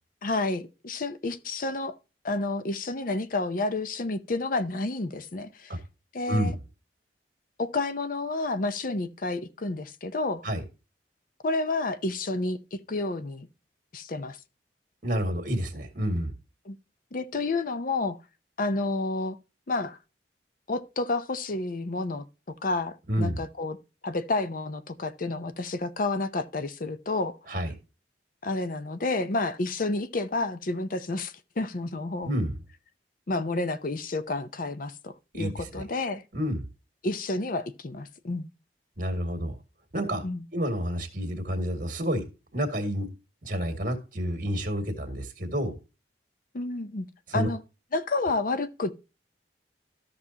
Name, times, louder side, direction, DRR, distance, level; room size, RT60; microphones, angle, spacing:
voice 1, 0.2-2.0 2.2-5.7 6.1-6.5 7.6-10.5 11.4-13.5 13.9-14.4 16.7-16.8 17.1-18.2 18.6-19.4 19.7-20.0 20.7-22.2 22.6-23.8 24.0-27.4 28.4-32.3 33.3-36.2 37.0-38.5 40.2-40.5 46.5-47.1 47.3-47.6 47.9-48.9, left 2 dB, 50° left, 0.7 m, -30 dB
voice 2, 15.0-16.3 23.1-23.4 27.5-27.7 32.2-32.6 35.3-35.8 36.3-36.6 39.0-39.6 39.9-40.2 40.5-42.2 42.5-43.1 43.4-45.7 47.3-47.5, equal, 50° right, 2.0 m, -29 dB
13.5 x 5.9 x 2.8 m
head